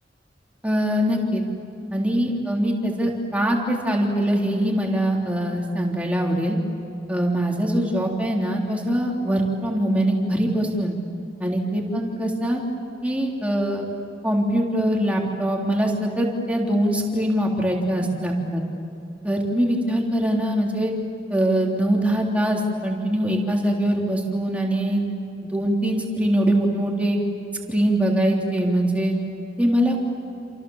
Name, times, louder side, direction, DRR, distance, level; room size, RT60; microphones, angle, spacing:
voice 1, 0.6-1.4 1.9-6.6 7.1-11.0 11.4-12.6 13.0-13.9 14.2-18.6 19.2-20.9 21.3-25.0 25.5-27.2 27.7-29.2 29.6-30.0, right 1 dB, 10° right, -1 dB, 3.6 m, -22 dB
28.5 x 28.0 x 7.3 m, 2.7 s
head